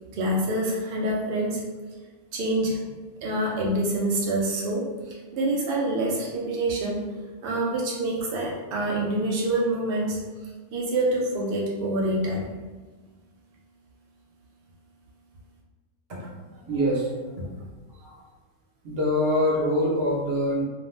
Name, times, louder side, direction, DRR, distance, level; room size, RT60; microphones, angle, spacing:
voice 1, 0.1-1.6 2.3-2.8 3.2-7.0 7.4-10.2 10.7-12.4, right 1 dB, 75° right, -3 dB, 0.5 m, -26 dB
voice 2, 16.1-17.1 17.4-17.6 17.9-18.2 18.8-20.6, equal, 50° right, -5 dB, 0.8 m, -25 dB
2.5 x 2.2 x 3.1 m, 1.3 s
omnidirectional pair, 1.6 m